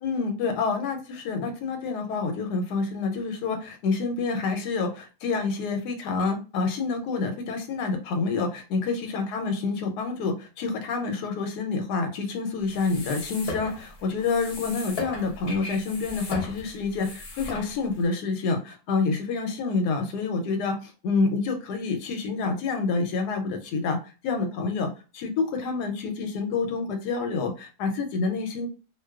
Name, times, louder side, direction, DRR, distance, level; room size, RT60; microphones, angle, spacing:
voice 1, 0.0-24.9 25.1-28.7, left 4 dB, 90° left, 5 dB, 1.1 m, -28 dB
sound 1, 12.6-18.0, left 2 dB, 50° left, 0.8 m, -38 dB
2.5 x 2.2 x 2.3 m, 0.33 s
omnidirectional pair, 1.7 m